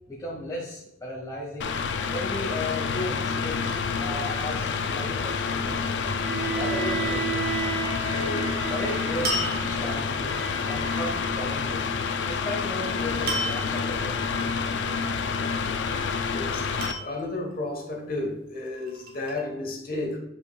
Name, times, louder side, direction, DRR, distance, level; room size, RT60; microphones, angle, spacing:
voice 1, 0.1-1.8 2.1-6.1 6.5-7.5 8.0-10.4 10.7-11.9 12.2-14.2, left 1 dB, 20° left, -7 dB, 1.3 m, -35 dB
Mechanical fan, 1.6-16.9, left 5 dB, 70° left, 0.4 m, -28 dB
Bowed string instrument, 6.2-11.4, right 5 dB, 80° right, 1.0 m, -33 dB
sound 1, 9.2-10.1 13.3-13.9 15.2-15.7 16.8-17.6 18.5-19.4, right 1 dB, 50° right, 1.3 m, -33 dB
voice 2, 16.3-16.6 17.0-20.2, left 2 dB, 50° left, 2 dB, 1.3 m, -32 dB
7.9 x 5.2 x 2.3 m, 0.81 s
head